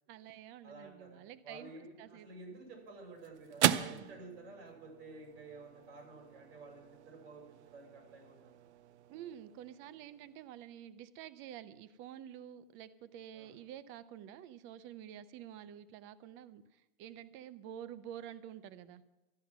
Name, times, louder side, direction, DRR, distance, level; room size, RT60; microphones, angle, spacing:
voice 1, 0.1-1.7 2.0-2.3 3.8-4.1 9.1-16.6 17.0-19.0, right 10 dB, 35° right, 14 dB, 0.7 m, -49 dB
voice 2, 0.6-8.5 13.3-13.6, right 2 dB, 70° right, 1 dB, 6.5 m, -52 dB
sound 1, 2.3-10.9, right 11 dB, 90° right, 0.8 m, -39 dB
13.5 x 10.5 x 6.0 m, 1.0 s
supercardioid pair, 145°, 33 cm